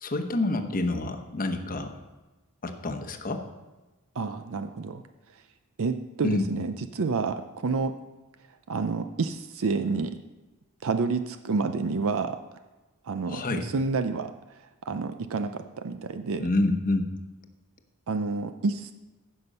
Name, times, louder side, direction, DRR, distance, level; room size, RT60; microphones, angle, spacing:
voice 1, 0.0-1.9 2.6-3.4 6.2-6.4 13.3-13.7 16.4-17.0, left 2 dB, 40° left, 6 dB, 1.0 m, -27 dB
voice 2, 4.2-5.0 5.8-8.0 8.7-10.2 10.8-12.4 13.0-14.3 14.8-16.5 18.1-18.9, right 4 dB, 65° right, 9 dB, 0.5 m, -29 dB
15.0 x 6.1 x 5.4 m, 1.1 s
head